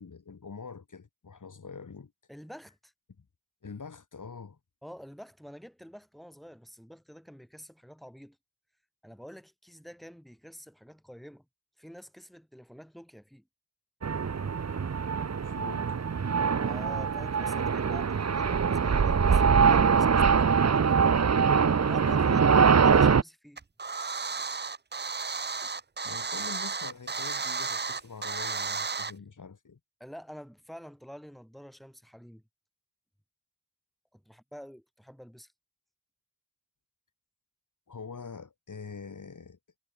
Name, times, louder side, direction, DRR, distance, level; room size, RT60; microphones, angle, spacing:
voice 1, 0.0-2.1 3.6-4.6 15.4-16.0 22.0-22.8 26.0-29.8 37.9-39.6, left 5 dB, 60° left, 2.8 m, -44 dB
voice 2, 2.3-2.9 4.8-8.4 9.0-11.5 11.8-13.5 16.6-23.6 30.0-32.4 34.1-35.5, equal, ahead, 5.3 m, -48 dB
sound 1, 14.0-23.2, right 6 dB, 45° right, 1.1 m, -23 dB
sound 2, 23.6-29.1, right 4 dB, 30° right, 0.8 m, -33 dB
cardioid pair, 40°, 35 cm